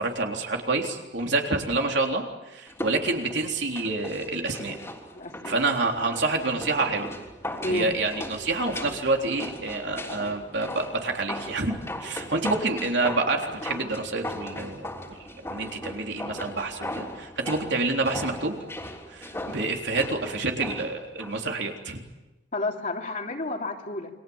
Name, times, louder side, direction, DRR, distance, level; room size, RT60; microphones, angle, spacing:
voice 1, 0.0-4.8 5.4-7.1 7.7-11.7 12.0-15.2 15.4-18.5 19.1-22.0, right 3 dB, 70° right, 2 dB, 3.7 m, -28 dB
sound 1, 2.7-21.5 21.8-21.9, left 1 dB, 15° left, 3.3 m, -38 dB
voice 2, 5.1-5.6 7.6-7.9 22.5-24.1, left 2 dB, 45° left, 2 dB, 3.1 m, -30 dB
29.0 x 23.5 x 7.3 m, 1.1 s
head